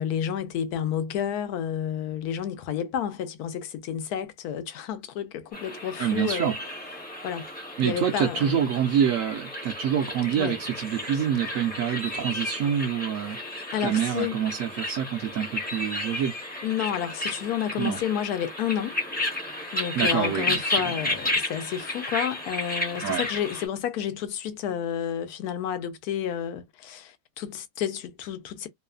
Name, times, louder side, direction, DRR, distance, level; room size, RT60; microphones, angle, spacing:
voice 1, 0.0-6.5 7.2-7.5 7.8-8.6 10.3-10.6 13.7-14.4 16.6-19.0 19.7-28.7, left 9 dB, 80° left, 1.1 m, -30 dB
sound 1, 5.5-23.7, left 1 dB, 10° left, 0.5 m, -33 dB
voice 2, 6.0-6.5 7.8-13.4 13.8-16.3 17.8-18.0 19.9-21.0 23.0-23.2, right 9 dB, 70° right, 0.9 m, -26 dB
3.1 x 2.0 x 2.3 m
omnidirectional pair, 1.6 m